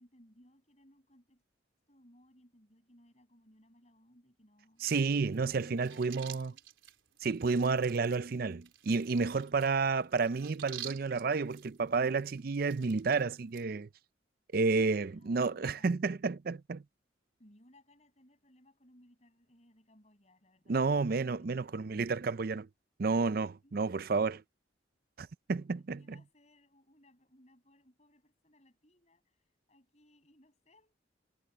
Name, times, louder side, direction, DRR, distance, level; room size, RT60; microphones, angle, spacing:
voice 1, 0.0-1.4 1.9-4.9 5.5-6.6 14.9-15.9 17.4-22.4 23.6-24.4 25.9-31.0, left 1 dB, 35° left, 6.7 m, -64 dB
voice 2, 4.8-6.5 7.2-13.9 14.5-16.8 20.7-22.7 23.0-24.4 25.2-26.0, right 4 dB, 50° right, 0.5 m, -31 dB
sound 1, 4.8-13.6, right 11 dB, 85° right, 4.0 m, -51 dB
head